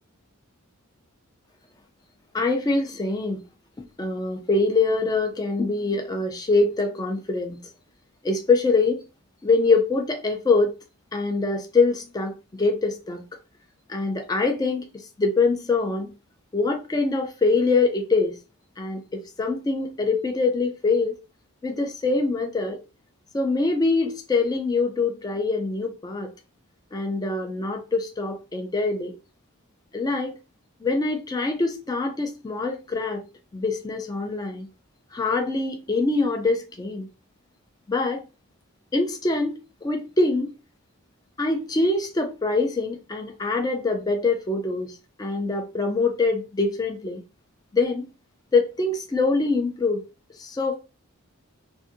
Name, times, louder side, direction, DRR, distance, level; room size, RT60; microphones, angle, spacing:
voice 1, 2.3-3.4 4.0-7.6 8.2-9.0 9.4-10.7 11.1-12.3 12.6-13.2 13.9-14.9 15.2-16.1 16.5-18.4 18.8-21.2 21.6-22.8 23.3-26.3 26.9-29.1 29.9-30.4 30.8-33.2 33.5-34.7 35.1-37.1 37.9-38.2 38.9-40.5 41.4-47.2 47.7-48.0 48.5-50.0 50.4-50.8, left 3 dB, 15° left, 0.3 m, -24 dB
2.6 x 2.5 x 2.5 m
head